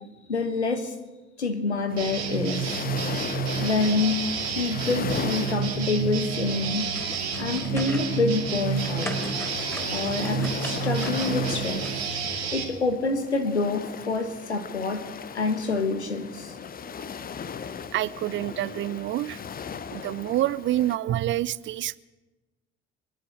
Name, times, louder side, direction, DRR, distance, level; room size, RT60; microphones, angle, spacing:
voice 1, 0.3-0.9 1.4-2.7 3.6-4.2 4.5-6.9 7.4-9.1 9.9-11.8 12.5-15.0 15.3-16.5, left 3 dB, 85° left, 7 dB, 1.3 m, -27 dB
sound 1, 1.9-21.0, left 7 dB, 25° left, 0.8 m, -37 dB
sound 2, 2.0-12.6, right 6 dB, 65° right, 2.7 m, -30 dB
sound 3, 6.8-8.1 8.4-11.9, equal, 5° left, 3.7 m, -40 dB
voice 2, 17.9-19.4 19.9-22.0, right 14 dB, 35° right, 19 dB, 0.5 m, -27 dB
25.5 x 10.5 x 4.9 m, 1.2 s
figure-of-eight pair, 55°, 33 cm